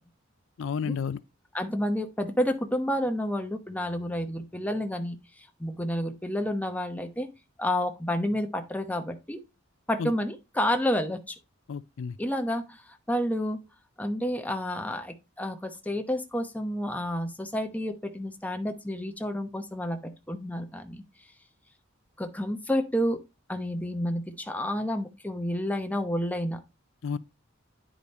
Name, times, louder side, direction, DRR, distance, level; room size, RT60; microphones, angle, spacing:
voice 1, 0.6-1.2 10.0-10.1 11.7-12.2 27.0-27.2, left 6 dB, 70° left, 0.4 m, -31 dB
voice 2, 1.5-5.2 5.6-7.3 7.6-9.4 9.9-11.4 12.2-12.8 13.1-13.6 14.0-21.0 22.2-23.2 23.5-26.6, equal, 10° left, 1.0 m, -30 dB
9.7 x 5.0 x 4.1 m
head